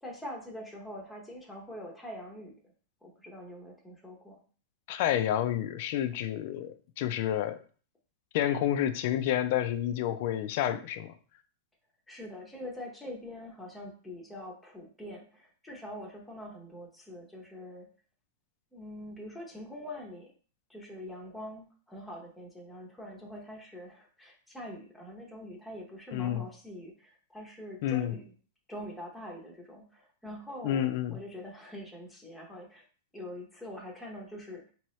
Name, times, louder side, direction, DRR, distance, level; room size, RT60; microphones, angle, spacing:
voice 1, 0.0-2.5 3.0-4.4 12.1-17.9 18.7-20.3 20.7-28.3 28.7-32.8 33.1-34.7, left 1 dB, 5° left, -2 dB, 0.7 m, -44 dB
voice 2, 4.9-7.6 8.3-11.1 26.1-26.4 27.8-28.1 30.6-31.2, left 11 dB, 45° left, 11 dB, 0.4 m, -29 dB
4.5 x 2.8 x 3.1 m, 0.41 s
supercardioid pair, 170°, 0 cm